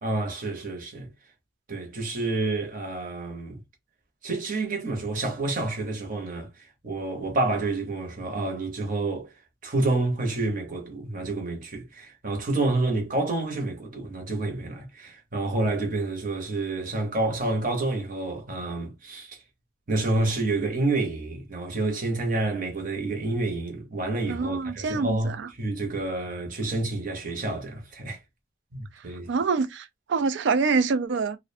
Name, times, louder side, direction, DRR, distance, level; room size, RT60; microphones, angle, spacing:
voice 1, 0.0-1.1 1.7-3.6 4.2-9.3 9.6-19.4 19.9-28.2 28.7-29.3, right 2 dB, 40° right, 0.8 m, -29 dB
voice 2, 24.3-25.5 29.3-31.4, right 4 dB, 60° right, 0.4 m, -25 dB
2.5 x 2.1 x 2.5 m
head